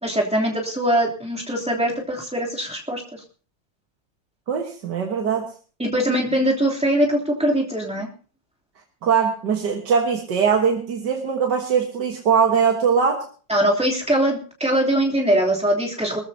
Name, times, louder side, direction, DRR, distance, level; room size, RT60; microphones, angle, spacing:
voice 1, 0.0-3.0 5.8-8.1 13.5-16.2, right 1 dB, 5° right, -2 dB, 3.1 m, -22 dB
voice 2, 4.5-5.5 9.0-13.3, right 6 dB, 70° right, 2 dB, 2.1 m, -21 dB
23.0 x 14.5 x 2.8 m, 0.38 s
omnidirectional pair, 2.0 m